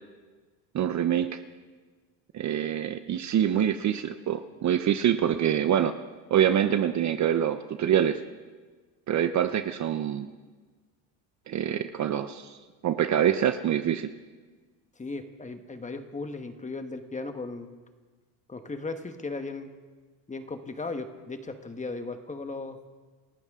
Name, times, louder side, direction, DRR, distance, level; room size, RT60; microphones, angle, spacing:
voice 1, 0.7-1.4 2.3-5.9 6.3-8.2 9.1-10.3 11.5-12.6 12.8-14.1, right 10 dB, 35° right, 10 dB, 0.7 m, -25 dB
voice 2, 15.0-17.7 18.5-19.7 20.3-22.8, left 3 dB, 15° left, 7 dB, 1.3 m, -36 dB
28.5 x 13.5 x 3.7 m, 1.4 s
cardioid pair, 115°, 47 cm